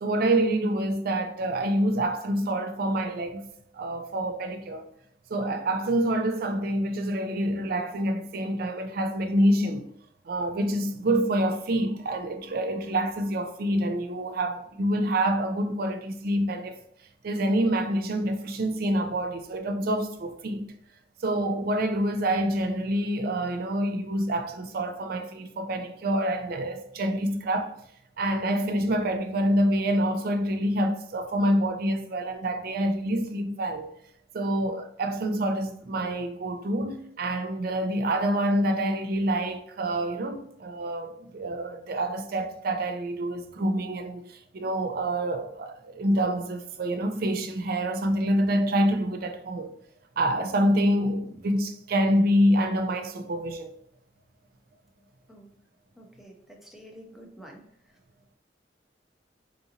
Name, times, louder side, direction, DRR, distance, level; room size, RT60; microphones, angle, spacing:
voice 1, 0.0-3.5 3.7-4.9 5.3-9.9 10.3-16.8 17.2-20.6 21.2-27.7 28.2-33.9 34.3-49.8 50.2-53.7, right 1 dB, 55° right, 0.4 m, -27 dB
voice 2, 56.0-57.6, equal, ahead, 0.6 m, -48 dB
3.8 x 2.5 x 2.7 m
head